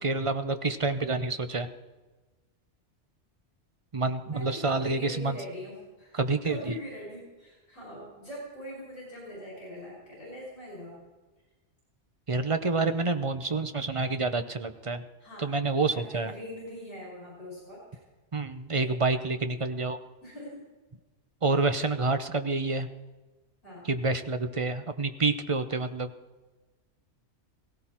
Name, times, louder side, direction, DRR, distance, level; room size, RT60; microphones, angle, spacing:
voice 1, 0.0-1.7 3.9-5.4 6.1-6.6 12.3-15.0 15.4-16.3 18.3-20.0 21.4-22.9 23.9-26.1, right 3 dB, 35° right, 9 dB, 0.7 m, -28 dB
voice 2, 4.2-6.2 6.4-11.0 15.2-15.5 15.9-18.0 18.8-18.9 20.2-20.6 23.6-23.9, equal, 50° left, -5 dB, 6.1 m, -42 dB
17.0 x 17.0 x 4.4 m, 1.2 s
omnidirectional pair, 1.2 m